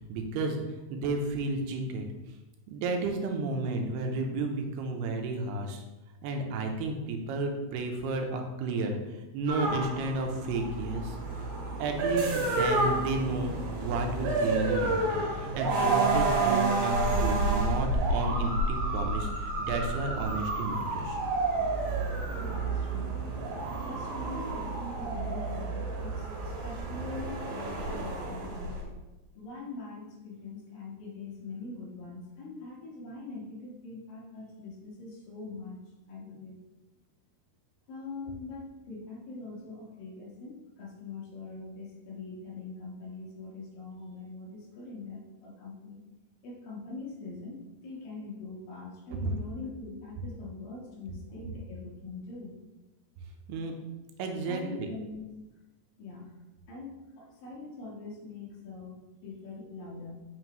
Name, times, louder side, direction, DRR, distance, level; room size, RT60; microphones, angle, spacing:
voice 1, 0.1-0.6 0.9-2.1 2.7-5.8 6.2-11.2 11.8-13.5 13.8-21.2 53.5-53.8 54.2-54.9, right 3 dB, 85° right, 3 dB, 2.8 m, -32 dB
sound 1, 9.5-28.8, right 2 dB, 65° right, 2.7 m, -30 dB
voice 2, 22.3-23.2 23.8-28.8 29.3-35.8 36.1-36.6 37.9-46.0 46.4-47.6 47.8-52.6 54.5-55.3 56.0-56.3 56.7-60.2, left 3 dB, 65° left, -3 dB, 2.9 m, -43 dB
7.8 x 6.0 x 3.0 m, 1.1 s
omnidirectional pair, 4.6 m